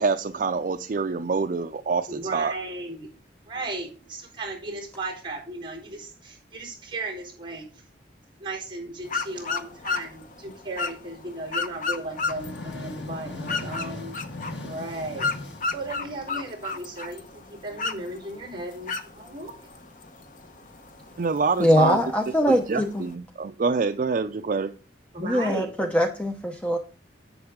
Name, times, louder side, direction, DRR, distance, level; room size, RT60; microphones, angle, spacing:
voice 1, 0.0-2.5 21.2-22.0 22.5-24.7, right 4 dB, 50° right, 9 dB, 0.4 m, -26 dB
voice 2, 2.1-3.1 3.5-7.8 8.4-14.2 14.6-15.3 15.7-19.5 25.1-25.7, right 2 dB, 25° right, -1 dB, 4.0 m, -36 dB
sound 1, 9.0-23.1, left 4 dB, 45° left, 0.9 m, -34 dB
sound 2, 12.1-16.6, left 2 dB, 90° left, 1.6 m, -38 dB
voice 3, 21.6-23.0 25.2-26.8, equal, 5° left, 4 dB, 0.7 m, -22 dB
11.0 x 7.9 x 3.7 m, 0.38 s
head